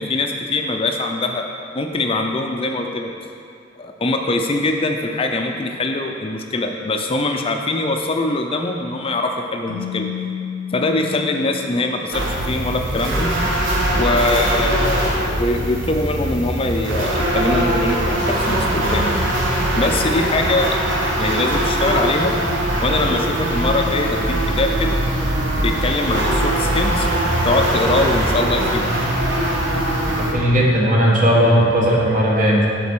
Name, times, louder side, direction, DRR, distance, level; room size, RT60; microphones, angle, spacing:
voice 1, 0.0-1.5 1.7-3.1 3.8-10.1 10.7-13.4 13.9-19.3 19.8-20.8 21.2-22.3 22.8-25.0 25.6-27.1 27.4-28.9, left 2 dB, 30° left, 3 dB, 0.5 m, -22 dB
Keyboard (musical), 9.7-12.4, left 8 dB, 85° left, 0.6 m, -31 dB
sound 1, 12.1-30.3, right 1 dB, 80° right, 1.2 m, -21 dB
voice 2, 30.2-32.7, equal, 45° right, -4 dB, 1.4 m, -16 dB
7.2 x 4.1 x 6.1 m, 2.5 s
head